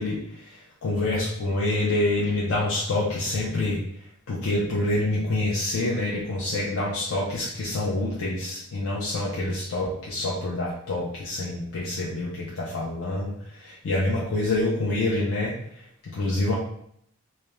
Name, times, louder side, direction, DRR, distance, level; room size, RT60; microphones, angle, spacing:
voice 1, 0.0-3.8 4.3-15.6 16.0-16.5, left 2 dB, 65° left, -5 dB, 0.4 m, -27 dB
2.3 x 2.0 x 3.0 m, 0.69 s
head